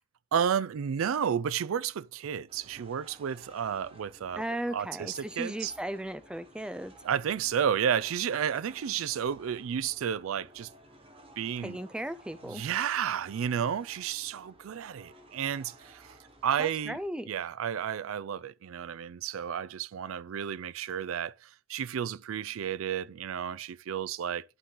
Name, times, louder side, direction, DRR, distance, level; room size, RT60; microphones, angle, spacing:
voice 1, 0.3-4.4 4.7-5.7 7.0-10.7 11.4-11.8 12.5-16.1 16.4-17.0 17.3-24.4, right 8 dB, 85° right, 0.4 m, -32 dB
sound 1, 2.5-17.1, right 1 dB, 25° right, 1.1 m, -56 dB
voice 2, 4.4-6.9 11.6-12.6 16.6-17.3, right 1 dB, 5° right, 0.3 m, -36 dB
11.0 x 3.9 x 3.8 m
head